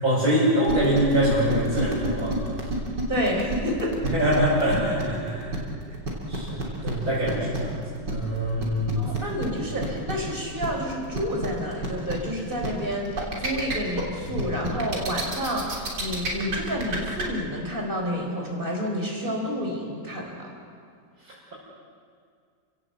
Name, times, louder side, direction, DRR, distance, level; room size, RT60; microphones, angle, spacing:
voice 1, 0.0-2.4 4.0-5.5 5.9-6.0 6.3-9.0 14.3-14.4 21.2-21.5, equal, 55° right, -9 dB, 6.7 m, -24 dB
sound 1, 0.6-17.2, right 2 dB, 75° right, 4.0 m, -30 dB
voice 2, 3.1-4.0 8.9-20.5, equal, 30° right, 0 dB, 4.8 m, -29 dB
30.0 x 17.0 x 8.0 m, 2.2 s
omnidirectional pair, 1.9 m